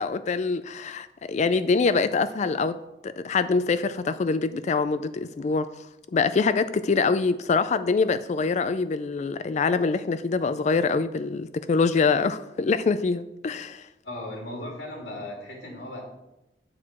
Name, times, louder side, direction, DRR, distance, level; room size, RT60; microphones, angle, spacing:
voice 1, 0.0-2.8 3.0-5.7 6.1-13.9, left 4 dB, 40° left, 12 dB, 0.3 m, -24 dB
voice 2, 14.0-16.0, left 1 dB, 85° left, -1 dB, 2.2 m, -36 dB
9.9 x 4.6 x 7.3 m, 0.92 s
head